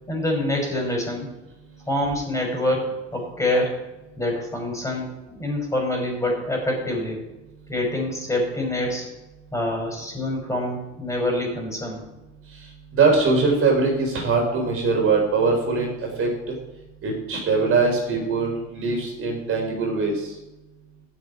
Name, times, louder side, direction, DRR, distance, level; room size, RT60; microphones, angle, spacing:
voice 1, 0.1-1.3 1.9-3.7 4.2-7.3 7.7-9.1 9.5-12.0, left 1 dB, 10° left, 1 dB, 6.0 m, -26 dB
voice 2, 12.9-15.9 16.2-16.5 17.0-20.3, right 4 dB, 40° right, 0 dB, 4.6 m, -22 dB
12.5 x 6.9 x 10.0 m, 1.0 s
supercardioid pair, 110°, 33 cm